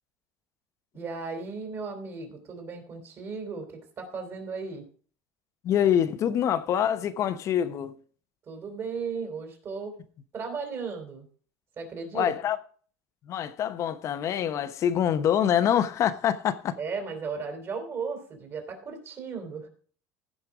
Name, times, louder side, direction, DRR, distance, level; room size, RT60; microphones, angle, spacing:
voice 1, 0.9-4.8 8.5-9.9 10.3-11.3 11.8-12.3 16.8-19.7, right 5 dB, 35° right, 3.7 m, -35 dB
voice 2, 5.6-8.0 12.1-12.6 13.3-16.8, left 9 dB, 40° left, 1.0 m, -25 dB
15.5 x 5.3 x 4.9 m
supercardioid pair, 130°, 8 cm